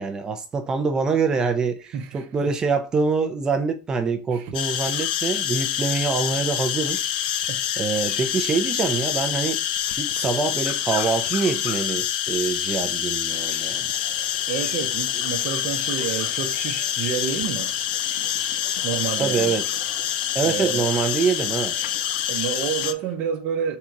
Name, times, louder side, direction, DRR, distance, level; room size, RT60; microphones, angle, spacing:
voice 1, 0.0-7.1 7.8-9.6 10.0-13.9 19.2-19.6 20.3-21.8, right 5 dB, 15° right, 0.4 m, -25 dB
voice 2, 1.9-2.5 4.3-4.5 7.5-7.6 14.5-17.7 18.8-19.6 20.4-20.9 22.3-23.8, right 8 dB, 40° right, 0.8 m, -29 dB
sound 1, 4.5-22.9, left 11 dB, 85° left, 0.4 m, -26 dB
sound 2, 13.3-23.2, left 7 dB, 65° left, 0.8 m, -48 dB
3.7 x 2.8 x 4.5 m
supercardioid pair, 180°, 5 cm